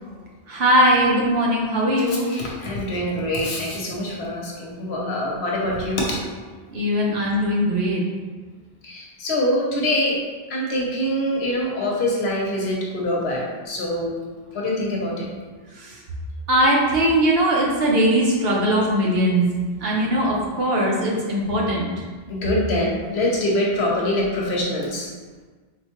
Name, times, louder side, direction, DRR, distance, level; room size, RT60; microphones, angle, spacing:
voice 1, 0.5-2.3 6.7-8.0 15.8-16.0 16.5-19.5 19.8-21.9, equal, 75° right, -3 dB, 0.9 m, -20 dB
voice 2, 2.1-6.2 8.8-10.2 10.5-14.1 14.5-15.3 22.3-25.1, left 1 dB, 85° left, -3 dB, 1.0 m, -24 dB
3.8 x 2.3 x 2.9 m, 1.4 s
omnidirectional pair, 1.0 m